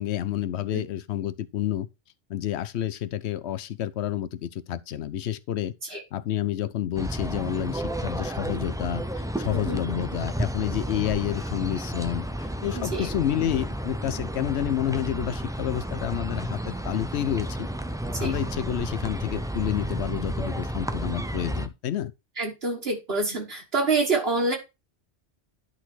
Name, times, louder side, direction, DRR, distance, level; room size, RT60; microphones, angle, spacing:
voice 1, 0.0-1.9 2.3-17.7 18.2-22.1, left 11 dB, 80° left, 0.9 m, -29 dB
sound 1, 7.0-21.7, equal, 5° right, 0.4 m, -32 dB
voice 2, 12.7-13.1 18.1-18.3 22.4-24.6, right 3 dB, 65° right, 1.9 m, -27 dB
10.5 x 4.1 x 4.4 m
omnidirectional pair, 1.1 m